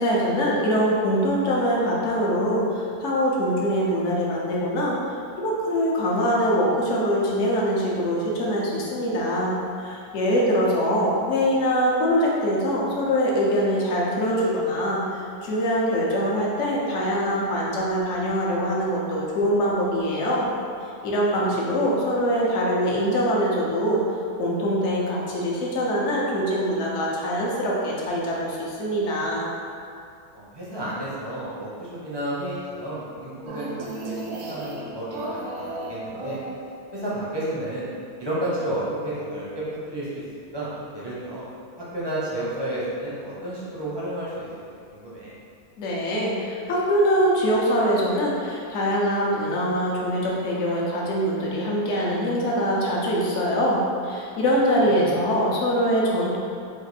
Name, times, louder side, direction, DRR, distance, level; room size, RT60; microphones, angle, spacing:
voice 1, 0.0-5.0 5.4-20.5 21.0-24.0 24.4-29.5 45.8-56.4, equal, 55° left, -4 dB, 1.0 m, -23 dB
voice 2, 21.2-21.7 30.3-36.4 36.9-37.9 38.2-40.2 40.5-41.5 41.8-44.5 44.9-45.3 54.8-55.2, right 1 dB, 25° right, -9 dB, 0.5 m, -32 dB
sound 1, 33.5-37.0, right 2 dB, 80° right, 1.1 m, -34 dB
4.3 x 2.5 x 4.1 m, 2.4 s
omnidirectional pair, 1.6 m